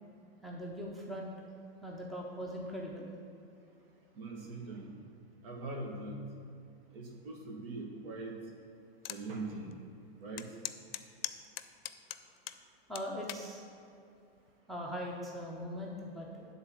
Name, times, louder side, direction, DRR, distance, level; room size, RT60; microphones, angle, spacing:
voice 1, 0.4-1.3 1.8-3.1 12.9-13.6 14.7-16.5, equal, ahead, -2 dB, 0.4 m, -40 dB
voice 2, 4.1-4.9 5.4-6.2 6.9-8.4 9.1-9.7 10.2-10.5, right 2 dB, 70° right, 1 dB, 1.7 m, -41 dB
sound 1, 9.0-9.2 9.7-9.8 10.4-12.6 13.0-13.5 14.2-14.5, left 12 dB, 75° left, 0.5 m, -40 dB
9.7 x 3.9 x 5.9 m, 2.5 s
supercardioid pair, 145°, 30 cm